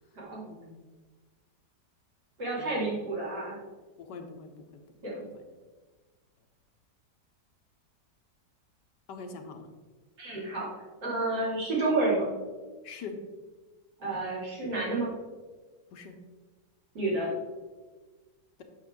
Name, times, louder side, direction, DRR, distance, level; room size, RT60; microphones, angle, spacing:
voice 1, 0.5-0.9 2.6-2.9 4.0-4.8 5.2-5.5 9.1-9.7 12.8-13.2 15.9-16.2, left 4 dB, 80° left, 5 dB, 1.5 m, -44 dB
voice 2, 2.4-3.6 5.0-5.2 10.2-10.7 11.0-12.3 14.0-15.1 16.9-17.3, right 2 dB, 70° right, -6 dB, 3.3 m, -30 dB
8.5 x 6.4 x 3.7 m, 1.3 s
omnidirectional pair, 1.9 m